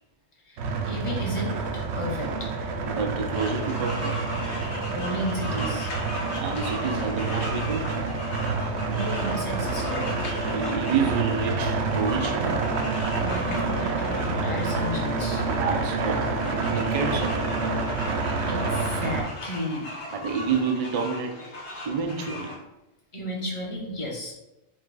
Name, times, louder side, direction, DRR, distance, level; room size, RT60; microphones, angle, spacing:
sound 1, 0.6-19.2, right 4 dB, 75° right, 0.9 m, -28 dB
voice 1, 0.9-2.5 4.9-5.9 8.7-10.2 13.1-15.5 18.5-19.9 21.7-21.9 23.1-24.3, equal, 30° left, -1 dB, 0.8 m, -33 dB
voice 2, 2.9-4.2 6.3-8.0 10.5-12.6 15.5-17.5 20.1-21.4 21.8-22.6, right 5 dB, 50° right, 5 dB, 0.4 m, -29 dB
sound 2, 3.3-22.5, left 1 dB, 75° left, 1.3 m, -37 dB
5.0 x 2.4 x 3.9 m, 0.92 s
omnidirectional pair, 1.2 m